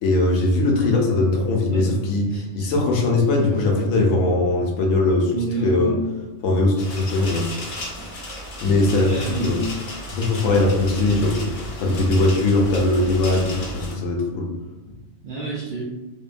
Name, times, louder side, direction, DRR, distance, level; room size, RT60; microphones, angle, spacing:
voice 1, 0.0-2.3 2.5-5.3 5.6-5.9 6.4-7.5 8.6-9.6 10.1-14.5, left 2 dB, 85° left, 0 dB, 1.0 m, -20 dB
voice 2, 2.3-2.7 5.3-6.1 8.6-9.7 11.7-12.1 15.2-15.8, right 3 dB, 60° right, -5 dB, 0.5 m, -30 dB
sound 1, 6.8-13.9, equal, 55° left, 0.6 m, -34 dB
2.8 x 2.2 x 2.4 m, 1.2 s
omnidirectional pair, 1.3 m